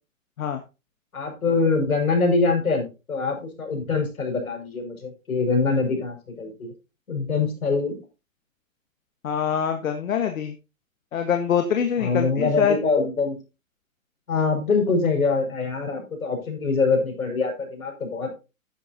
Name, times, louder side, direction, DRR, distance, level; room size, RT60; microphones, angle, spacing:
voice 1, 1.1-6.7 7.1-8.0 12.0-13.4 14.3-18.4, left 4 dB, 90° left, 2 dB, 6.1 m, -24 dB
voice 2, 9.2-10.5 11.1-12.8, left 8 dB, 70° left, 6 dB, 1.6 m, -24 dB
12.0 x 10.0 x 2.8 m, 0.29 s
hypercardioid pair, 140°, 41 cm